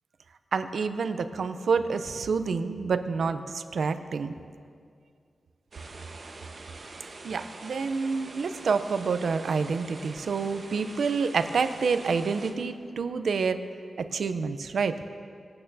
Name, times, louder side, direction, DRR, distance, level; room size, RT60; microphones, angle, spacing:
voice 1, 0.5-4.3 7.2-13.6 14.0-14.9, right 5 dB, 80° right, 9 dB, 0.5 m, -28 dB
sound 1, 5.7-12.5, right 3 dB, 50° right, 1.1 m, -44 dB
24.5 x 8.8 x 2.7 m, 2.3 s
wide cardioid pair, 130°, 0 cm